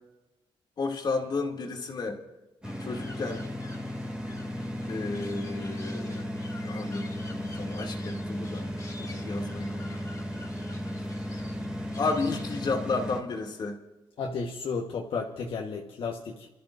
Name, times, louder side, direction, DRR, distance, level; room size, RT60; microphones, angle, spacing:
voice 1, 0.8-2.2 2.8-3.5 4.9-6.3 6.6-8.7 9.2-9.9 10.4-10.5 11.3-11.4 12.0-13.8, left 3 dB, 50° left, 1 dB, 2.5 m, -32 dB
sound 1, 2.6-12.8, left 3 dB, 35° left, 2.3 m, -50 dB
sound 2, 2.6-13.2, equal, 10° right, 2.5 m, -35 dB
voice 2, 14.2-16.5, left 4 dB, 65° left, -1 dB, 1.3 m, -33 dB
29.5 x 13.5 x 2.6 m, 1.1 s
wide cardioid pair, 135°, 10 cm